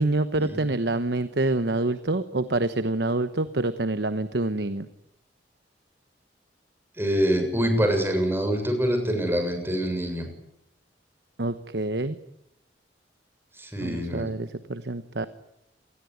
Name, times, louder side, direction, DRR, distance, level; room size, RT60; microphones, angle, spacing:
voice 1, 0.0-4.9 11.4-12.2 13.8-15.3, right 2 dB, 65° right, 11 dB, 1.1 m, -26 dB
voice 2, 7.0-10.2 13.6-14.3, equal, 15° right, 5 dB, 7.0 m, -25 dB
27.5 x 20.0 x 9.7 m, 0.81 s
head